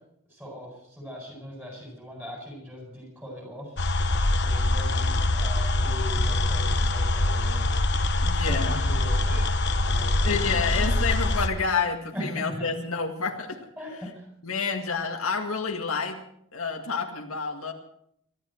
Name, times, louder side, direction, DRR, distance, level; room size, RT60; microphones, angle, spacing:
voice 1, 0.3-3.8 4.3-7.7 8.4-11.0 12.1-12.7 13.8-14.3, equal, 10° right, 0 dB, 7.6 m, -40 dB
sound 1, 3.8-11.5, left 2 dB, 55° left, 1.1 m, -24 dB
voice 2, 8.2-8.8 10.2-13.6 14.4-16.2 16.5-17.7, left 5 dB, 80° left, 3 dB, 1.9 m, -29 dB
23.5 x 13.0 x 4.5 m, 0.71 s
head